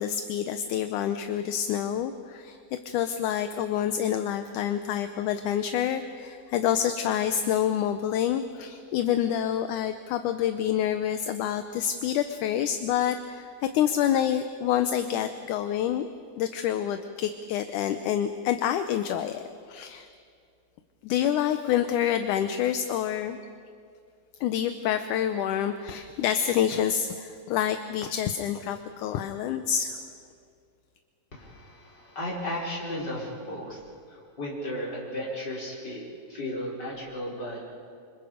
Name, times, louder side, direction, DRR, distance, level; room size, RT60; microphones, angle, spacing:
voice 1, 0.0-16.1 16.4-20.1 21.0-23.4 24.4-30.0, left 10 dB, 75° left, 9 dB, 2.0 m, -27 dB
voice 2, 31.3-33.8 34.1-37.7, left 1 dB, 30° left, -4 dB, 6.0 m, -35 dB
29.0 x 26.0 x 5.2 m, 2.3 s
omnidirectional pair, 4.1 m